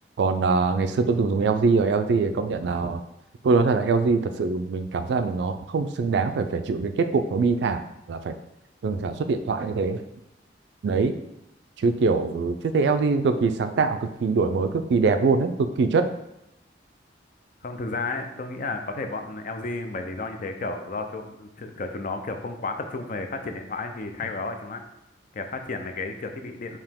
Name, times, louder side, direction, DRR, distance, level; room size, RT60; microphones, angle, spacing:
voice 1, 0.2-3.0 3.4-7.8 8.1-8.4 8.8-10.0 10.8-11.1 11.8-16.1, right 4 dB, 65° right, 9 dB, 0.3 m, -23 dB
voice 2, 17.6-24.8 25.3-26.8, left 3 dB, 45° left, 6 dB, 0.4 m, -32 dB
4.7 x 2.9 x 3.6 m, 0.85 s
head